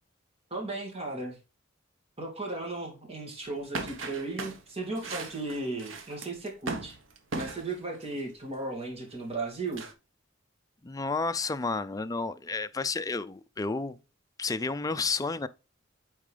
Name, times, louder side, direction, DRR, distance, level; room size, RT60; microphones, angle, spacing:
voice 1, 0.5-1.4 2.2-7.0 7.3-9.8, right 2 dB, 30° right, 2.3 m, -35 dB
sound 1, 3.7-8.2 9.7-9.9, right 3 dB, 80° right, 1.2 m, -38 dB
voice 2, 10.8-14.0 14.4-15.5, left 4 dB, 20° left, 0.4 m, -31 dB
8.8 x 4.5 x 3.3 m
head